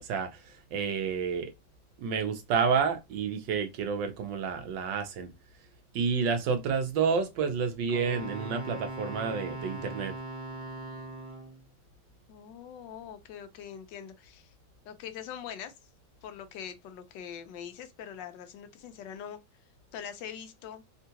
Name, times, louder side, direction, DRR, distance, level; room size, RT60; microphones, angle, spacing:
voice 1, 0.7-1.5 2.0-5.3 5.9-10.1, right 6 dB, 70° right, 1.3 m, -29 dB
Wind instrument woodwind instrument, 7.9-11.6, right 2 dB, 20° right, 1.1 m, -40 dB
voice 2, 12.3-14.5 14.9-15.7 16.2-19.4 19.9-20.8, left 8 dB, 70° left, 1.2 m, -43 dB
3.7 x 2.4 x 2.8 m
omnidirectional pair, 2.1 m